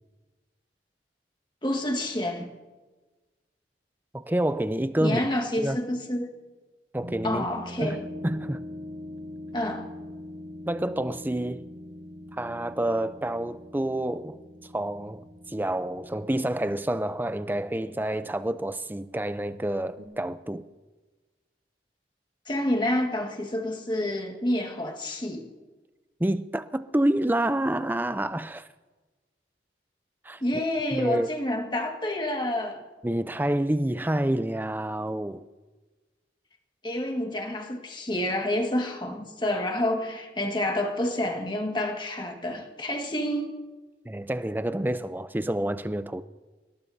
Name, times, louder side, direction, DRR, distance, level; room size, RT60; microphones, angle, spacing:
voice 1, 1.6-2.5 5.0-6.3 7.2-8.0 9.5-9.9 22.5-25.5 30.4-32.8 36.8-43.5, left 1 dB, 25° left, 1.8 m, -28 dB
voice 2, 4.1-5.2 5.6-5.8 6.9-7.4 7.8-8.6 10.7-11.6 12.4-14.4 14.7-20.6 26.2-28.7 30.2-30.4 30.9-31.3 33.0-35.4 44.0-46.2, right 1 dB, 10° right, 0.5 m, -28 dB
sound 1, 7.0-18.7 20.0-20.1, left 1 dB, 70° right, 4.3 m, -43 dB
29.0 x 18.0 x 2.8 m
head